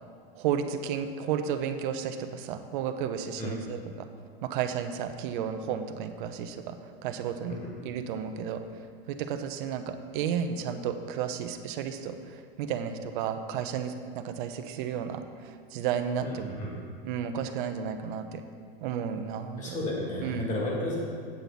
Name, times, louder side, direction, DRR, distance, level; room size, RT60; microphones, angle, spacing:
voice 1, 0.4-4.1 4.4-6.8 7.0-7.6 7.8-8.6 9.1-16.5 17.0-18.4 18.8-19.8 20.2-20.6, right 8 dB, 55° right, 8 dB, 0.8 m, -32 dB
voice 2, 16.2-16.7 19.6-21.0, left 1 dB, 25° left, -4 dB, 2.4 m, -33 dB
8.5 x 7.8 x 4.0 m, 2.1 s
hypercardioid pair, 130°, 31 cm